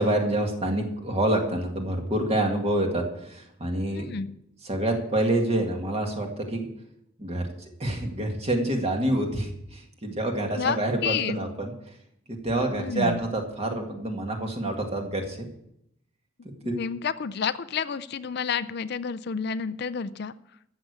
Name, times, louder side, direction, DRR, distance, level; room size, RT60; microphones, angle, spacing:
voice 1, 0.0-4.1 4.6-6.7 7.2-11.7 12.4-15.5 16.7-16.8, right 1 dB, 30° right, 3 dB, 2.0 m, -27 dB
voice 2, 3.9-4.3 10.6-10.8 11.0-11.4 12.8-13.2 16.6-20.3, left 6 dB, 55° left, 15 dB, 0.5 m, -30 dB
13.5 x 6.8 x 8.2 m, 0.78 s
head